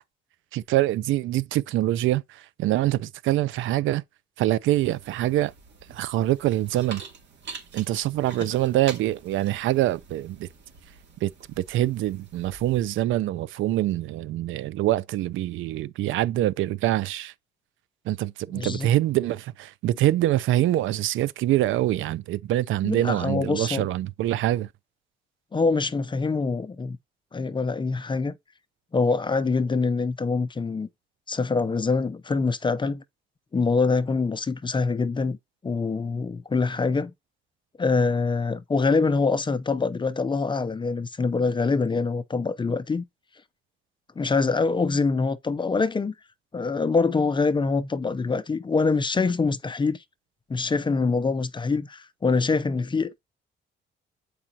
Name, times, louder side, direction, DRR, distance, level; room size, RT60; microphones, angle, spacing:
voice 1, 0.5-4.0 4.4-5.5 5.9-7.0 7.7-10.5 11.2-11.3 11.6-17.3 18.1-24.7, right 14 dB, 80° right, 0.5 m, -25 dB
sound 1, 4.7-13.0, right 5 dB, 60° right, 2.3 m, -45 dB
voice 2, 18.5-18.9 22.8-23.8 25.5-27.0 27.3-28.3 28.9-30.9 31.3-33.0 33.5-35.4 35.6-37.1 37.8-43.0 44.2-46.1 46.5-50.0 50.5-53.2, left 4 dB, 25° left, 0.6 m, -24 dB
7.6 x 4.8 x 2.8 m
cardioid pair, 90°, 20 cm